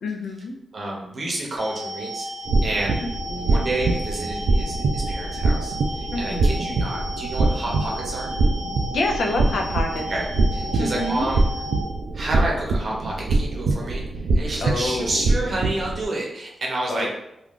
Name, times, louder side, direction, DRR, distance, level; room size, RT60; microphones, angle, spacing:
voice 1, 0.0-0.5 3.0-3.7 6.1-6.7 8.9-10.1 10.8-11.3 14.6-15.3 16.9-17.1, left 2 dB, 85° left, 2 dB, 0.4 m, -28 dB
voice 2, 0.7-2.3 2.6-3.0 3.4-8.3 10.1-10.2 10.5-11.4 12.1-17.1, right 1 dB, 45° right, -2 dB, 0.7 m, -29 dB
sound 1, 1.6-11.8, equal, 65° left, 0.9 m, -34 dB
sound 2, 2.4-16.0, right 2 dB, 70° right, 0.3 m, -24 dB
2.4 x 2.3 x 3.5 m, 0.84 s
wide cardioid pair, 165°, 0 cm